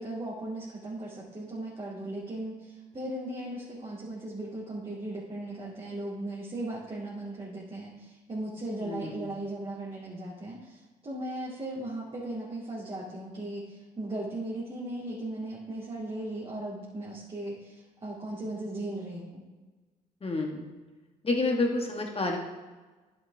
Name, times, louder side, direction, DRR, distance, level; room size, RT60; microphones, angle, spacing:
voice 1, 0.0-19.4, right 1 dB, 30° right, -7 dB, 2.5 m, -37 dB
voice 2, 8.8-9.3 20.2-20.7 21.2-22.4, left 2 dB, 30° left, 1 dB, 1.8 m, -29 dB
11.0 x 7.0 x 3.5 m, 1.3 s
hypercardioid pair, 50°, 20 cm